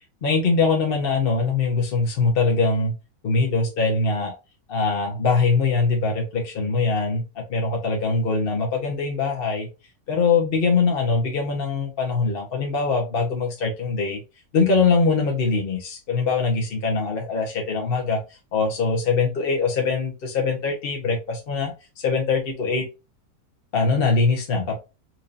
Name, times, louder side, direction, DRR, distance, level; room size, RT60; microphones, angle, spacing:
voice 1, 0.2-2.9 3.2-4.3 4.7-9.7 10.1-14.2 14.5-22.8 23.7-24.8, left 4 dB, 45° left, 0.8 m, -22 dB
4.4 x 2.7 x 2.5 m
omnidirectional pair, 1.7 m